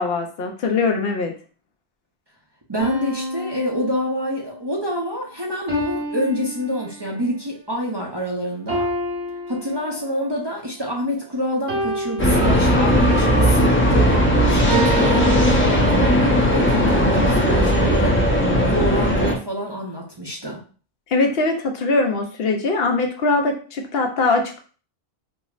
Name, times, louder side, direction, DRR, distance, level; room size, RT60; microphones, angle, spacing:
voice 1, 0.0-1.3 21.1-24.6, left 3 dB, 70° left, 3 dB, 0.8 m, -21 dB
voice 2, 2.7-8.9 9.5-14.2 14.5-18.2 18.5-20.6, equal, 30° right, -3 dB, 0.6 m, -27 dB
sound 1, 2.8-4.6 5.7-7.3 8.7-10.3 11.7-13.2 14.7-15.4, right 1 dB, 80° right, 1.6 m, -29 dB
sound 2, 12.2-19.3, equal, 15° left, 0.5 m, -17 dB
4.8 x 2.0 x 2.4 m, 0.39 s
omnidirectional pair, 1.1 m